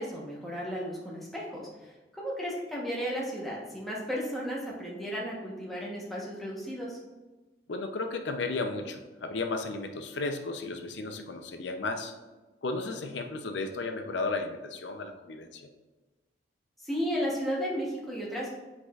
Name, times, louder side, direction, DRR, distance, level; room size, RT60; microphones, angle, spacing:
voice 1, 0.0-7.0 16.8-18.5, equal, ahead, -5 dB, 1.1 m, -34 dB
voice 2, 7.7-12.1 12.6-15.7, left 3 dB, 80° left, 6 dB, 0.6 m, -34 dB
8.6 x 4.8 x 2.4 m, 1.2 s
head